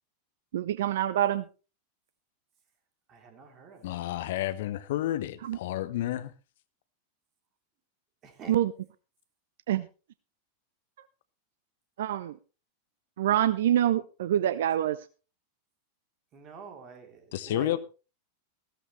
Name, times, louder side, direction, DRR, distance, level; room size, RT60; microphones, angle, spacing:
voice 1, 0.5-1.4 5.4-5.6 8.5-8.7 9.7-9.9 12.0-12.3 13.2-15.0, right 11 dB, 60° right, 0.5 m, -26 dB
voice 2, 3.1-4.0 8.2-8.5 16.3-17.8, right 6 dB, 30° right, 3.3 m, -47 dB
voice 3, 3.8-6.3 17.3-17.8, left 13 dB, 55° left, 0.8 m, -31 dB
15.5 x 13.5 x 3.2 m
figure-of-eight pair, 90°, 0 cm